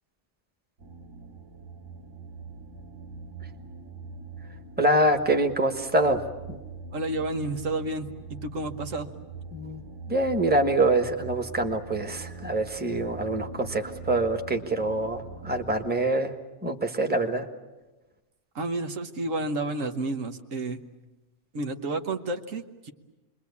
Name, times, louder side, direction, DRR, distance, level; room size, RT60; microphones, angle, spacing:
sound 1, 0.8-15.9, right 3 dB, 90° right, 2.3 m, -42 dB
voice 1, 4.8-6.2 6.5-6.6 9.5-9.8 10.1-16.3 16.6-17.5, right 2 dB, 5° right, 5 dB, 1.4 m, -25 dB
voice 2, 6.9-9.1 18.5-20.8 21.5-22.9, right 2 dB, 70° right, 6 dB, 1.6 m, -31 dB
28.0 x 22.0 x 8.4 m, 1.1 s
omnidirectional pair, 1.4 m